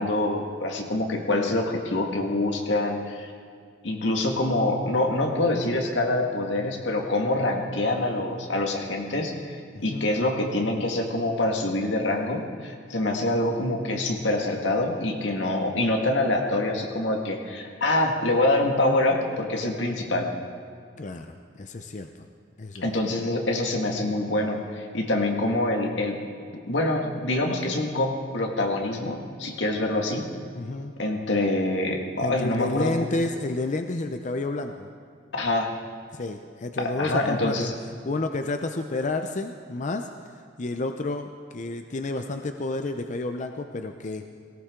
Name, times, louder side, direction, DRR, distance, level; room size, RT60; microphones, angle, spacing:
voice 1, 0.0-3.3 3.8-20.3 22.8-26.2 26.7-30.3 31.0-32.9 35.3-35.7 36.8-37.7, left 2 dB, 85° left, 1 dB, 1.9 m, -25 dB
voice 2, 9.7-10.1 21.0-22.3 22.6-22.9 30.5-30.9 32.2-34.9 36.1-37.6 38.0-40.1 40.6-44.2, left 2 dB, 40° left, 6 dB, 0.6 m, -30 dB
18.0 x 17.5 x 3.8 m, 2.2 s
head